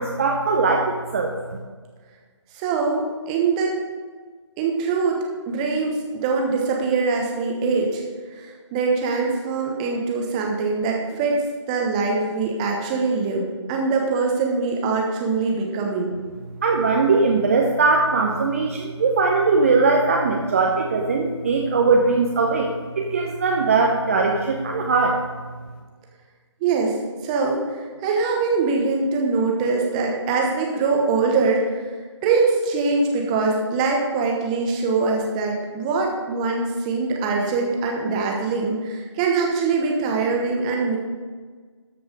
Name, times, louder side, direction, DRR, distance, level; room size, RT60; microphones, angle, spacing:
voice 1, 0.0-1.3 16.6-25.2, right 4 dB, 30° right, 0 dB, 0.7 m, -20 dB
voice 2, 2.5-3.7 4.6-5.2 5.5-8.0 8.3-16.2 26.6-27.0 27.2-32.0 32.2-41.0, right 4 dB, 15° right, 0 dB, 1.1 m, -23 dB
13.0 x 5.3 x 5.3 m, 1.5 s
figure-of-eight pair, 150°, 15 cm